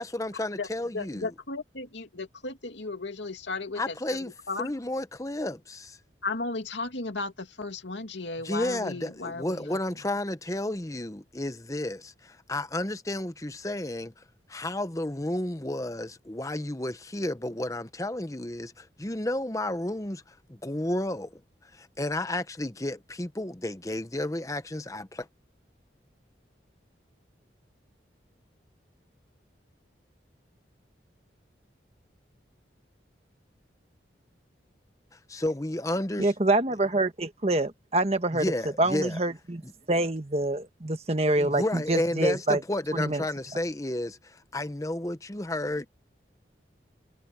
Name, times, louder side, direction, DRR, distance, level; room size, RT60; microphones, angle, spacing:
voice 1, 0.0-1.3 3.8-4.3 4.6-6.0 8.4-14.2 14.5-21.3 21.7-25.3 35.3-36.3 38.3-39.2 39.6-39.7 41.4-45.9, left 1 dB, 20° left, 0.9 m, -32 dB
voice 2, 0.9-4.7 6.2-9.8, left 3 dB, 85° left, 2.5 m, -35 dB
voice 3, 36.2-38.4 38.8-39.6 39.9-42.6 42.9-43.2, right 2 dB, 35° right, 1.4 m, -26 dB
head